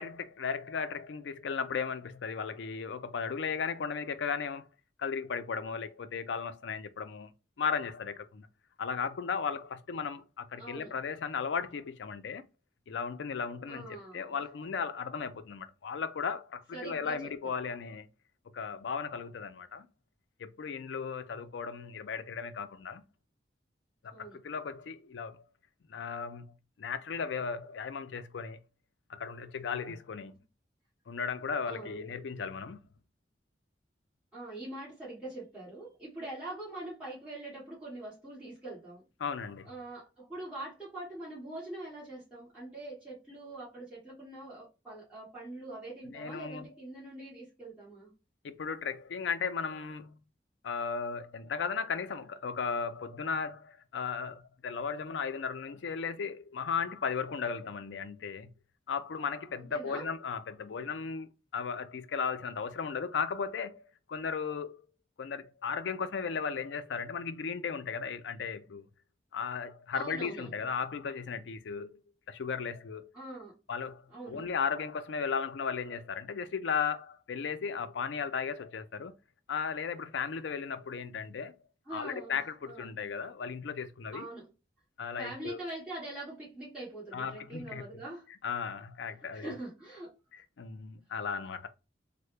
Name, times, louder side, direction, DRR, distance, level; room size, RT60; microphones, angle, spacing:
voice 1, 0.0-4.7 5.0-7.3 7.6-8.5 8.8-12.4 12.9-13.9 14.1-18.1 18.5-19.9 20.4-23.0 24.0-25.4 25.9-26.5 26.8-28.6 29.1-30.4 31.1-32.9 39.2-39.7 46.1-46.7 48.4-50.2 50.6-58.5 58.9-64.8 65.2-68.9 69.3-72.0 72.3-73.1 73.7-79.1 79.5-81.5 81.9-84.3 85.0-85.6 87.1-88.0 88.4-89.5 90.3-91.7, left 6 dB, 90° left, 0.4 m, -36 dB
voice 2, 10.6-10.9 13.7-14.4 16.7-17.5 24.1-24.4 31.7-32.0 34.3-39.0 39.6-48.1 59.5-60.1 69.9-70.5 73.1-73.5 74.1-74.5 81.9-82.4 82.6-82.8 84.1-84.5 85.2-88.3 89.2-90.1, right 2 dB, 5° right, 1.7 m, -43 dB
3.6 x 2.1 x 3.2 m
head